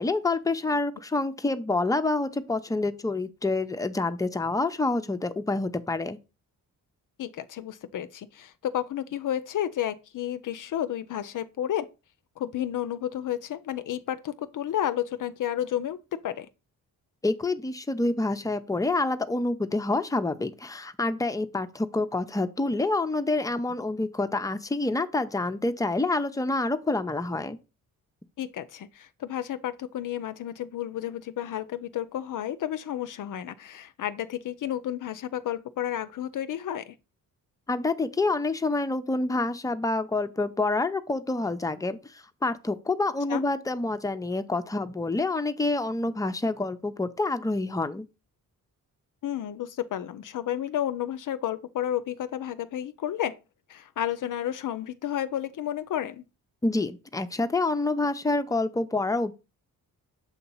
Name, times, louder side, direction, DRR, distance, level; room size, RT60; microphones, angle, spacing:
voice 1, 0.0-6.2 17.2-27.6 37.7-48.0 56.6-59.3, left 2 dB, 10° left, 0.5 m, -27 dB
voice 2, 7.2-11.9 12.4-16.5 28.4-37.0 43.3-43.4 49.2-53.4 53.7-56.2, left 11 dB, 60° left, 0.5 m, -31 dB
7.1 x 2.8 x 5.4 m
cardioid pair, 85°, 36 cm